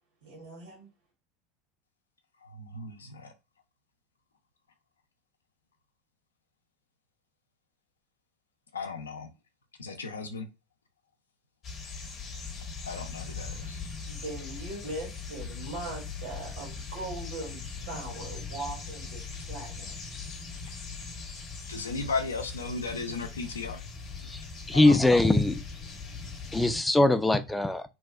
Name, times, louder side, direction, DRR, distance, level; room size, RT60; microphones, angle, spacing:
voice 1, 0.2-0.9 14.0-19.9, right 2 dB, 70° right, 1.1 m, -40 dB
voice 2, 2.6-3.3 8.7-9.3 9.8-10.5 12.9-13.8 21.7-23.8 24.7-25.0, left 4 dB, 80° left, 0.4 m, -35 dB
sound 1, 11.6-26.8, left 4 dB, 35° left, 0.8 m, -40 dB
voice 3, 24.7-25.6 26.5-27.8, left 2 dB, 5° left, 0.3 m, -22 dB
2.6 x 2.3 x 2.3 m
figure-of-eight pair, 80°, 0 cm